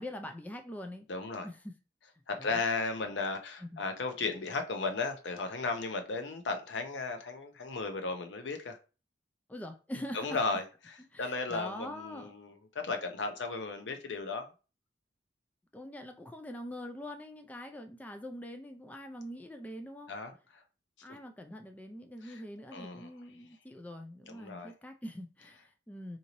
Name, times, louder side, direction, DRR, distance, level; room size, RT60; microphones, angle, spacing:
voice 1, 0.0-1.1 1.4-1.7 2.4-2.6 3.6-3.8 9.5-10.4 11.1-12.3 15.7-20.1 21.0-26.2, left 1 dB, 10° left, 0.3 m, -44 dB
voice 2, 1.1-1.5 2.3-8.8 10.1-14.5 20.1-20.6 22.2-22.4 22.7-23.1 24.3-24.7, left 3 dB, 80° left, 0.6 m, -35 dB
3.9 x 2.7 x 2.9 m
head